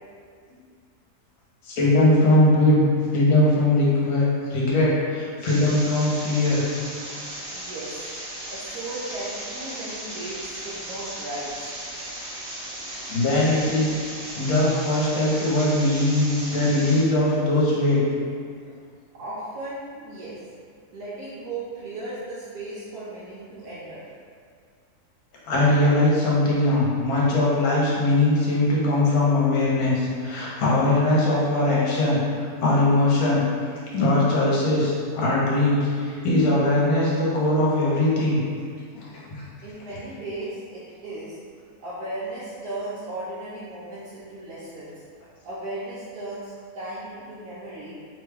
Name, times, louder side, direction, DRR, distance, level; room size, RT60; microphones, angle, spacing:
voice 1, 1.6-2.8 3.1-6.6 13.1-14.0 14.4-18.0 25.5-33.4 33.9-38.4 38.9-39.4, left 1 dB, 65° left, -5 dB, 1.2 m, -21 dB
sound 1, 5.4-17.0, right 1 dB, 60° right, 1.1 m, -36 dB
voice 2, 7.5-8.0 8.5-11.6 19.1-20.4 20.9-24.1 39.6-44.9 45.4-47.9, right 2 dB, 75° right, -10 dB, 1.2 m, -36 dB
3.0 x 2.2 x 3.3 m, 2.1 s
omnidirectional pair, 1.7 m